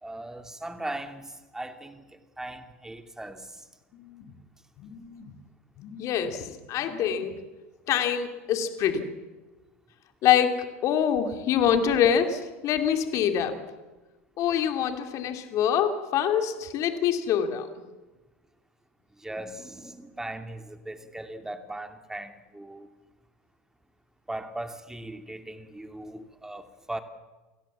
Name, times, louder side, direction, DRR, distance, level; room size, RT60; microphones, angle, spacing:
voice 1, 0.0-2.0 2.4-3.7 19.2-22.9 24.3-27.0, right 1 dB, 5° right, 8 dB, 2.5 m, -38 dB
voice 2, 3.9-4.3 4.8-5.3 5.8-7.3 7.9-9.1 10.2-13.6 14.4-17.7, left 9 dB, 50° left, 7 dB, 2.6 m, -25 dB
29.5 x 16.5 x 7.3 m, 1.2 s
hypercardioid pair, 90°, 7 cm